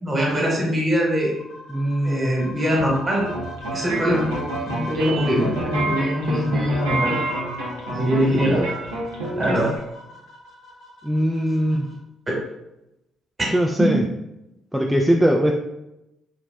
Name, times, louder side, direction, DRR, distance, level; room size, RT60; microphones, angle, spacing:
voice 1, 0.0-1.3 2.0-3.2 3.7-4.3 4.7-7.2 7.9-8.8 9.3-9.7 12.3-12.4 13.4-13.5 13.8-14.0, equal, 30° right, -2 dB, 1.2 m, -22 dB
sound 1, 1.1-11.9, left 2 dB, 65° left, 0.8 m, -41 dB
voice 2, 1.7-2.3 11.0-11.9 13.5-14.0 14.7-15.5, equal, 5° right, 0 dB, 0.3 m, -20 dB
sound 2, 3.2-9.8, right 2 dB, 85° right, 0.6 m, -28 dB
3.2 x 2.4 x 2.2 m, 0.89 s
hypercardioid pair, 45°, 0 cm